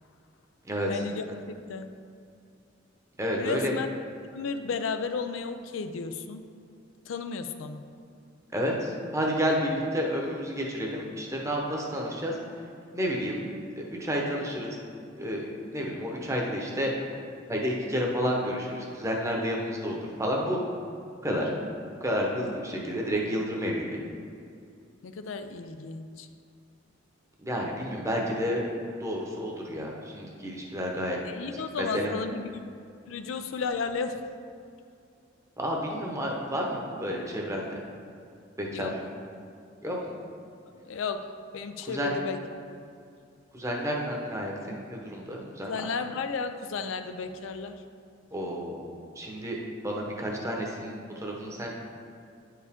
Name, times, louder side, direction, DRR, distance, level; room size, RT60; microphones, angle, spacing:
voice 1, 0.9-1.9 3.4-3.9 4.3-6.4 7.1-7.8 25.0-26.3 31.2-32.6 33.1-34.2 38.7-38.9 40.7-41.3 41.5-42.4 42.7-42.8 45.6-47.8, left 5 dB, 85° left, 9 dB, 0.4 m, -33 dB
voice 2, 3.2-3.7 8.5-12.3 12.9-13.4 13.8-14.8 15.1-17.0 17.5-20.6 21.2-21.5 22.0-23.9 27.4-28.6 29.0-31.2 31.8-32.1 35.6-37.7 38.6-38.9 39.8-40.1 41.9-42.1 43.5-45.8 48.3-48.8 49.2-49.6 49.8-51.7, equal, 15° right, -1 dB, 0.9 m, -30 dB
9.4 x 4.7 x 3.6 m, 2.4 s
head